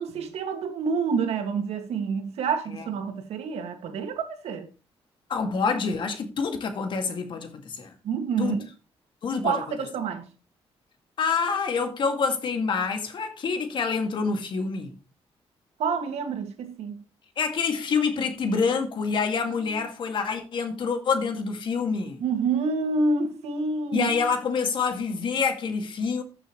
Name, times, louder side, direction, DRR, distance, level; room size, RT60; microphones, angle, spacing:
voice 1, 0.0-4.7 8.0-8.7 9.4-10.3 15.8-17.0 19.6-19.8 22.2-24.1, right 4 dB, 85° right, 2.0 m, -28 dB
voice 2, 5.3-7.9 8.4-8.5 9.2-9.6 11.2-15.0 17.4-22.2 23.9-26.2, left 5 dB, 50° left, 2.2 m, -27 dB
14.0 x 7.1 x 3.1 m
cardioid pair, 155°, 10 cm